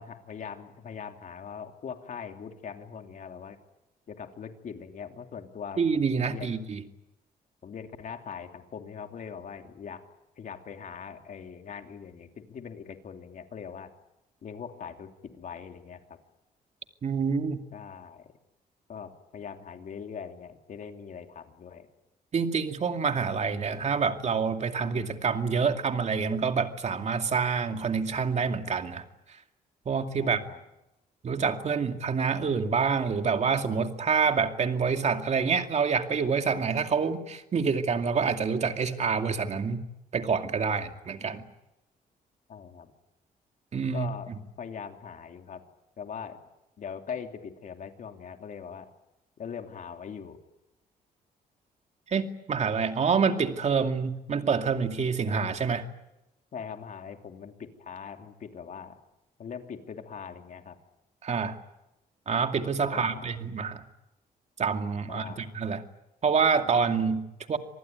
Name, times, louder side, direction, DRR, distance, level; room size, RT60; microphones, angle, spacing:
voice 1, 0.0-3.6 4.1-6.7 7.6-10.0 10.4-13.9 14.4-16.0 17.7-18.3 18.9-21.9 30.2-30.6 42.5-42.9 43.9-44.3 44.6-45.6 46.0-46.4 46.8-48.9 49.4-50.4 56.5-59.0 59.4-60.8 62.9-63.4 65.1-65.5, left 7 dB, 55° left, 5 dB, 3.0 m, -41 dB
voice 2, 5.8-6.8 17.0-17.6 22.3-29.0 29.9-30.4 31.2-39.8 40.1-41.4 43.7-44.1 52.1-55.8 61.2-61.6 62.3-63.8 64.6-65.8 66.2-67.6, right 5 dB, 45° right, 6 dB, 2.4 m, -27 dB
26.0 x 19.5 x 9.4 m, 0.93 s
cardioid pair, 95°, 16 cm